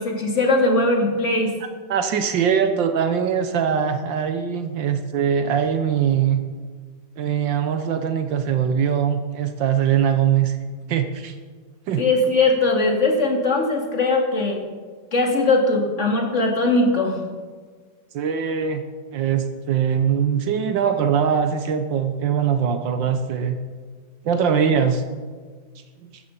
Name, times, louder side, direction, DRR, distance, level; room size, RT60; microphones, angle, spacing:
voice 1, 0.0-1.5 12.0-14.6 15.1-17.2, left 2 dB, 40° left, 1 dB, 2.6 m, -20 dB
voice 2, 1.9-6.4 7.2-10.6 10.9-11.4 11.9-12.0 18.1-18.8 19.1-23.6 24.2-25.0 26.0-26.1, right 8 dB, 75° right, 8 dB, 1.6 m, -22 dB
14.5 x 13.0 x 5.6 m, 1.5 s
omnidirectional pair, 2.0 m